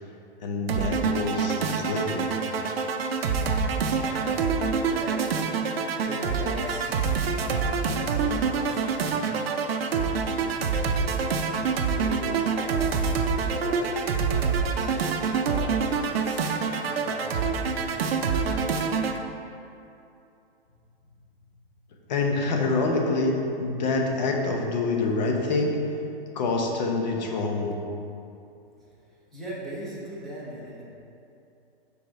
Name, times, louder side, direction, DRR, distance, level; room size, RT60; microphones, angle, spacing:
voice 1, 0.4-2.4 22.1-25.8 26.3-27.7, left 3 dB, 45° left, 1 dB, 0.9 m, -26 dB
sound 1, 0.7-19.2, right 5 dB, 75° right, 0.6 m, -26 dB
voice 2, 3.8-5.2 5.6-5.8 6.0-9.5 9.8-12.8 13.1-14.0 14.3-15.8 16.2-18.4 28.8-30.8, right 1 dB, ahead, -8 dB, 0.7 m, -41 dB
5.0 x 4.7 x 4.6 m, 2.7 s
hypercardioid pair, 160°, 31 cm